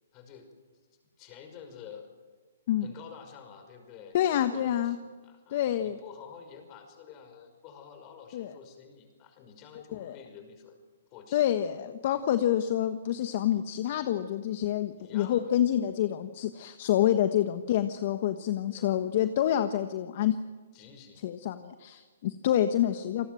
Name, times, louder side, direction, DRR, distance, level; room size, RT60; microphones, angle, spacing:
voice 1, 0.1-0.5 1.2-2.1 2.8-10.8 11.1-11.5 12.1-12.3 15.0-15.5 18.6-19.0 20.7-21.2, left 7 dB, 30° left, 6 dB, 5.6 m, -49 dB
voice 2, 4.1-4.9 5.5-6.0 8.3-8.5 9.9-10.2 11.3-20.4 21.2-23.3, left 11 dB, 50° left, 9 dB, 1.4 m, -27 dB
28.5 x 20.0 x 7.8 m, 1.4 s
hypercardioid pair, 135°, 0 cm